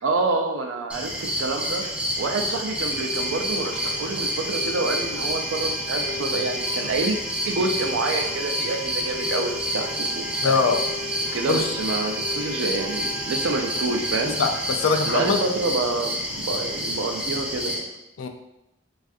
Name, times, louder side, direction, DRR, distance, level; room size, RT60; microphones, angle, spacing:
voice 1, 0.0-1.8 2.2-7.2 7.4-9.9 10.1-10.5 11.3-14.4 15.1-17.8, right 3 dB, 85° right, 4 dB, 0.4 m, -27 dB
sound 1, 0.9-17.8, equal, 5° right, 0.5 m, -29 dB
sound 2, 1.8-1.9 2.9-15.3, equal, 50° left, 0.8 m, -36 dB
voice 2, 10.4-10.8 11.5-11.7 14.2-15.4 18.2-18.3, left 4 dB, 80° left, 6 dB, 0.3 m, -22 dB
3.5 x 2.4 x 2.4 m, 0.88 s
head